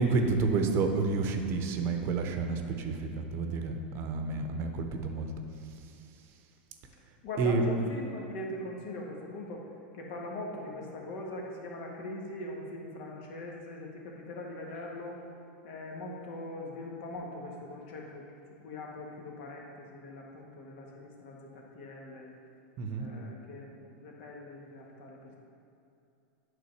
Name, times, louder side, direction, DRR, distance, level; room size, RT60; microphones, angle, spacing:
voice 1, 0.0-5.3 7.4-7.7 22.8-23.1, right 4 dB, 45° right, 5 dB, 0.8 m, -29 dB
voice 2, 7.2-9.7 9.9-15.2 15.6-18.2 18.6-22.3 22.9-25.3, left 2 dB, 60° left, -1 dB, 1.6 m, -41 dB
8.4 x 3.7 x 6.4 m, 2.6 s
hypercardioid pair, 115°, 6 cm